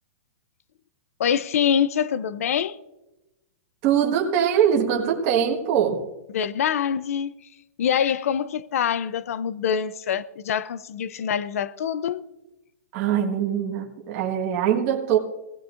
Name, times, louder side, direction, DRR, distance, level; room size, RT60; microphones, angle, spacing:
voice 1, 1.2-2.8 6.3-7.3 7.8-12.3, left 8 dB, 65° left, 0.6 m, -25 dB
voice 2, 3.8-6.0 12.9-15.2, right 9 dB, 30° right, 1.6 m, -22 dB
22.5 x 16.5 x 2.5 m
hypercardioid pair, 170°, 8 cm